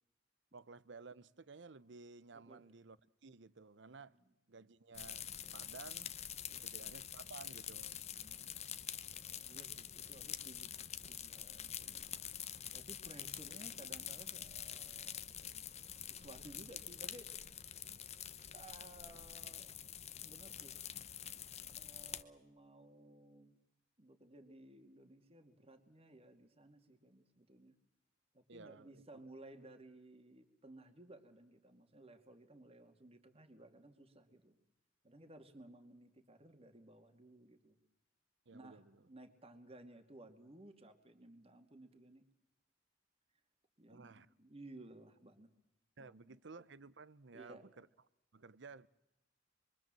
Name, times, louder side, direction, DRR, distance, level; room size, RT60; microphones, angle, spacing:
voice 1, 0.5-4.2 4.5-6.1 6.6-8.0 28.5-29.0 38.5-39.0 43.9-44.3 46.0-47.9 48.3-48.9, right 4 dB, 65° right, 0.8 m, -55 dB
sound 1, 4.9-22.2, left 9 dB, 35° left, 1.0 m, -47 dB
voice 2, 8.1-8.5 8.8-12.2 12.7-15.3 16.0-17.3 18.5-19.7 20.2-20.8 21.8-23.6 24.0-27.8 28.3-34.6 35.0-37.8 38.5-42.2 43.8-45.5 46.0-46.4 47.3-47.6, right 1 dB, 30° right, 2.2 m, -58 dB
27.0 x 23.0 x 7.6 m
head